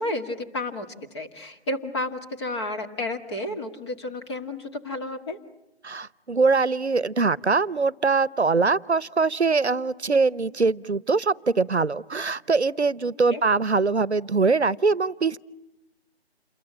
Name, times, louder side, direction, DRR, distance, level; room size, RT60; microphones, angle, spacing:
voice 1, 0.0-5.4 13.3-13.4, left 1 dB, 25° left, 4 dB, 2.2 m, -31 dB
voice 2, 5.8-15.4, right 4 dB, 85° right, 21 dB, 0.9 m, -22 dB
28.5 x 22.5 x 8.9 m, 0.89 s
figure-of-eight pair, 150°, 33 cm